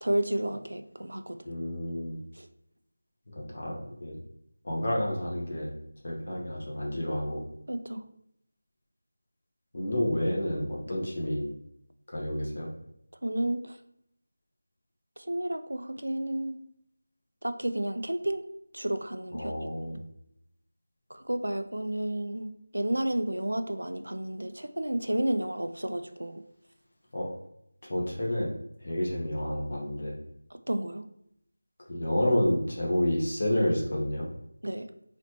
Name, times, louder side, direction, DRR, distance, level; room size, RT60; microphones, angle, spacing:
voice 1, 0.0-1.4 2.4-2.5 7.7-8.0 13.2-13.8 15.2-16.6 17.4-18.4 18.7-19.5 19.9-20.0 21.1-26.4 30.5-31.0 34.6-34.9, right 1 dB, 90° right, 9 dB, 0.4 m, -31 dB
voice 2, 1.4-2.2 3.3-4.2 4.6-5.7 6.0-7.4 9.7-11.5 12.1-12.7 19.3-20.0 27.1-27.3 27.9-28.5 28.8-30.1 31.9-34.3, left 1 dB, 50° left, -3 dB, 1.3 m, -29 dB
4.0 x 3.1 x 3.0 m, 0.76 s
figure-of-eight pair, 170°, 0 cm